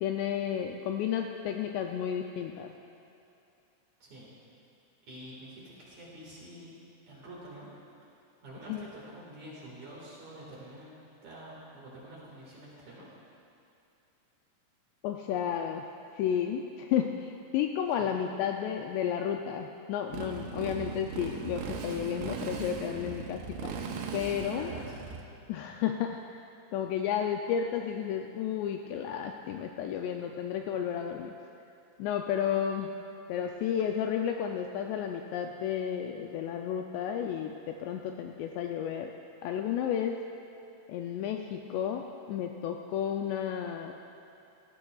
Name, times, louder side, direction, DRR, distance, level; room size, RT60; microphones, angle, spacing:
voice 1, 0.0-2.7 8.7-8.8 15.0-15.8 16.1-23.7 24.1-24.7 25.5-26.4 26.7-31.3 32.0-32.9 33.3-39.1 39.4-40.2 40.9-43.9, left 9 dB, 85° left, 3 dB, 2.5 m, -32 dB
voice 2, 4.0-4.3 5.1-6.7 7.1-7.7 8.4-10.9 11.2-13.1 18.0-18.2 24.5-25.1, right 1 dB, 50° right, -6 dB, 2.6 m, -47 dB
Motorcycle, 20.1-25.2, right 5 dB, 90° right, 3.2 m, -38 dB
18.0 x 14.0 x 2.3 m, 2.7 s
omnidirectional pair, 5.2 m